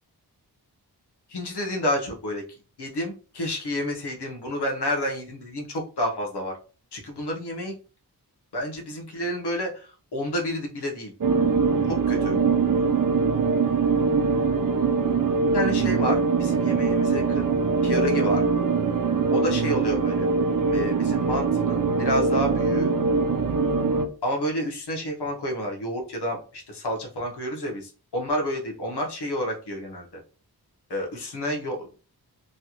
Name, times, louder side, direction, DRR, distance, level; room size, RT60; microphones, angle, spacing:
voice 1, 1.3-2.4 2.8-6.5 6.9-7.7 8.5-11.1 11.9-12.4 15.5-17.6 17.8-18.4 19.3-20.3 20.6-22.9 24.2-30.2 30.9-31.9, equal, 75° left, 1 dB, 1.1 m, -29 dB
sound 1, 11.2-24.1, right 4 dB, 55° right, 0.6 m, -22 dB
3.1 x 2.4 x 2.9 m, 0.37 s
cardioid pair, 60°, 40 cm